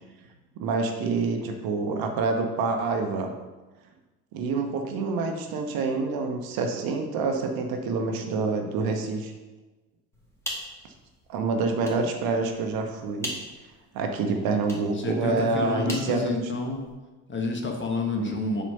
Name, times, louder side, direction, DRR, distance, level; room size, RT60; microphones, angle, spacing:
voice 1, 0.6-3.3 4.3-9.3 11.3-13.3 13.9-16.3 18.2-18.3, right 4 dB, 50° right, 4 dB, 1.0 m, -27 dB
sound 1, 10.1-17.0, left 1 dB, 5° left, 2.1 m, -42 dB
voice 2, 14.9-16.8 17.3-18.6, left 3 dB, 25° left, 2 dB, 1.4 m, -29 dB
7.3 x 4.1 x 5.5 m, 1.2 s
figure-of-eight pair, 65°, 47 cm